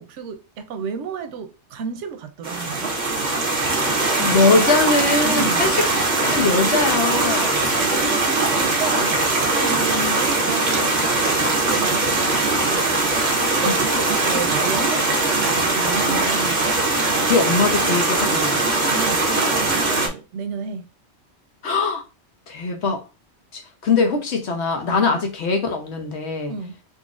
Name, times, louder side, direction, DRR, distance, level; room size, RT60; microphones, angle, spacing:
voice 1, 0.0-3.0 5.2-5.7 8.0-16.7 18.9-20.9 25.0-25.2 26.5-26.8, right 5 dB, 85° right, 0.9 m, -32 dB
sound 1, 2.4-20.1, right 2 dB, 45° right, 1.0 m, -21 dB
voice 2, 4.1-5.9 6.3-7.8 13.6-13.8 17.2-18.7 21.6-22.0 22.5-23.0 23.5-26.5, left 4 dB, 70° left, 1.1 m, -21 dB
3.9 x 2.9 x 2.4 m
omnidirectional pair, 1.2 m